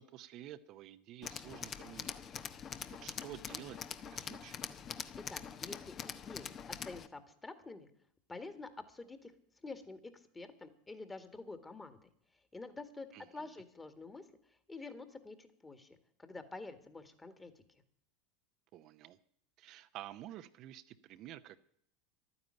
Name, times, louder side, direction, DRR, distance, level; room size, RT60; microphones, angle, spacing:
voice 1, 0.0-2.2 3.0-4.6 13.1-13.6 18.7-19.2 19.6-21.6, right 12 dB, 50° right, 10 dB, 0.8 m, -50 dB
Tools, 1.2-7.1, left 7 dB, 40° left, 1.0 m, -44 dB
voice 2, 5.3-7.9 8.3-9.3 9.6-12.1 12.5-17.5, left 3 dB, 15° left, 10 dB, 2.0 m, -48 dB
12.0 x 9.7 x 8.9 m, 0.68 s
hypercardioid pair, 90°, 0 cm